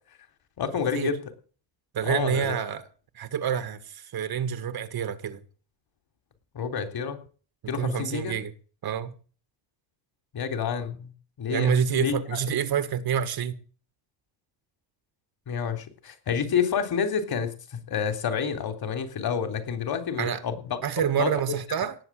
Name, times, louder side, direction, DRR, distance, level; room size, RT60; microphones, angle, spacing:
voice 1, 0.6-1.3 2.0-2.5 6.5-7.2 7.7-8.3 10.3-11.1 11.4-12.4 15.5-20.8 21.2-21.3, left 7 dB, 50° left, 3.6 m, -29 dB
voice 2, 1.9-2.8 3.1-5.4 7.6-8.5 8.8-9.1 11.5-13.6 20.2-20.4 20.8-22.0, right 8 dB, 50° right, 1.5 m, -27 dB
18.5 x 7.5 x 7.6 m
cardioid pair, 105°, 47 cm